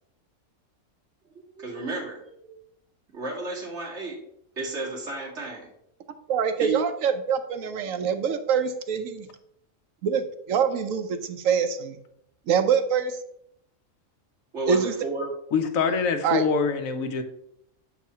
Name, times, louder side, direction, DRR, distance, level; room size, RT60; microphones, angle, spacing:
voice 1, 1.3-2.4 3.1-4.2 4.6-5.7 6.6-6.8 14.5-15.3, right 3 dB, 60° right, -4 dB, 2.5 m, -32 dB
voice 2, 6.3-9.3 10.0-12.0 12.5-13.2 14.7-14.9 16.2-16.5, right 7 dB, 80° right, 8 dB, 1.1 m, -25 dB
voice 3, 15.5-17.2, left 5 dB, 80° left, 6 dB, 1.2 m, -24 dB
7.2 x 4.7 x 4.3 m, 0.75 s
omnidirectional pair, 1.4 m